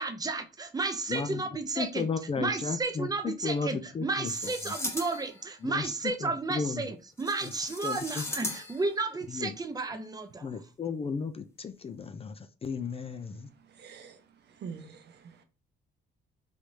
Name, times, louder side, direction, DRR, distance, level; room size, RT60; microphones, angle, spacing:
voice 1, 0.0-2.1 2.4-10.5, right 3 dB, 20° right, 0.5 m, -33 dB
voice 2, 1.1-1.4 1.8-4.3 5.6-5.9 6.2-6.8 7.8-8.5 9.3-9.5 10.4-13.5, left 5 dB, 30° left, 0.3 m, -34 dB
sound 1, 4.3-5.5 7.2-8.9, left 2 dB, 15° left, 0.8 m, -38 dB
voice 3, 13.4-15.4, right 6 dB, 60° right, 0.7 m, -46 dB
3.2 x 2.7 x 3.2 m
cardioid pair, 90°, 20 cm